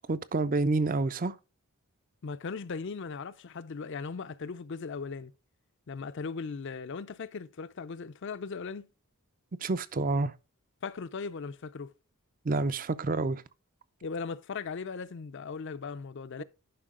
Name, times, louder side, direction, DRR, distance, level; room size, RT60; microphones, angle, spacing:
voice 1, 0.1-1.3 9.6-10.3 12.4-13.4 16.4-16.5, right 3 dB, 40° right, 0.5 m, -28 dB
voice 2, 2.2-5.3 5.9-8.9 10.8-11.9 14.0-16.4, left 5 dB, 55° left, 0.5 m, -38 dB
11.5 x 5.4 x 3.7 m
head